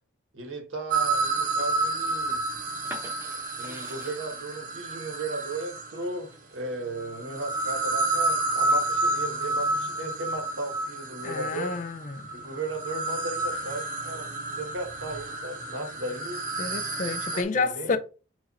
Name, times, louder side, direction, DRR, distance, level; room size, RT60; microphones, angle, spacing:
voice 1, 0.3-2.4 3.6-11.8 12.3-14.3 14.6-16.5 17.3-18.0, right 2 dB, 75° right, 1.4 m, -36 dB
sound 1, 0.9-6.1 6.9-17.4, right 2 dB, 40° right, 0.8 m, -30 dB
sound 2, 2.8-8.5 8.9-9.8, right 1 dB, 10° right, 0.8 m, -47 dB
voice 2, 11.2-12.3 16.6-18.0, left 4 dB, 40° left, 0.4 m, -29 dB
5.0 x 2.5 x 4.1 m
head